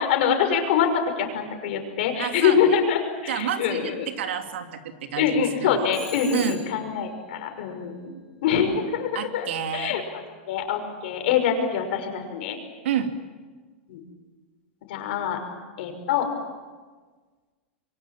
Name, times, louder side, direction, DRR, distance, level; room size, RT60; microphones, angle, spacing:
voice 1, 0.0-4.1 5.2-8.1 8.4-12.6 13.9-14.0 14.9-15.4 15.8-16.3, left 7 dB, 60° left, 5 dB, 5.9 m, -25 dB
voice 2, 2.2-2.6 3.3-5.9 6.3-6.6 9.1-10.0 12.8-13.1, right 9 dB, 80° right, 5 dB, 3.0 m, -29 dB
Telephone, 5.9-7.0, left 2 dB, 5° left, 7.6 m, -41 dB
27.0 x 23.5 x 7.5 m, 1.4 s
supercardioid pair, 155°, 6 cm